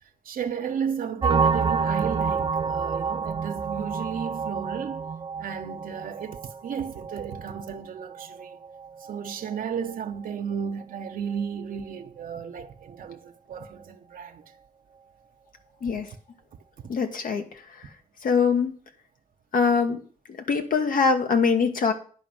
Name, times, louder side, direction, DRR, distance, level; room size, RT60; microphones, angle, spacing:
voice 1, 0.2-5.1 5.4-8.6 9.1-14.4, right 7 dB, 90° right, 0.9 m, -33 dB
sound 1, 1.2-10.5 10.8-11.0 11.3-11.5 11.7-11.9, right 5 dB, 30° right, 0.4 m, -29 dB
voice 2, 16.9-17.5 18.2-18.7 19.5-20.0 20.5-21.9, left 5 dB, 85° left, 1.5 m, -22 dB
10.5 x 5.2 x 7.8 m
wide cardioid pair, 105°, 14 cm